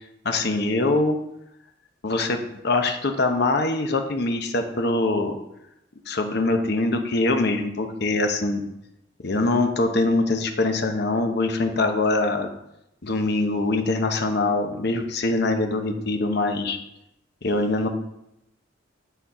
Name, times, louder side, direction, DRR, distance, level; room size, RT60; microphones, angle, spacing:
voice 1, 0.2-1.2 2.0-5.4 6.1-8.6 9.2-12.5 13.0-16.8 17.4-17.9, left 2 dB, 55° left, 5 dB, 0.8 m, -23 dB
10.0 x 4.2 x 4.2 m, 0.83 s
head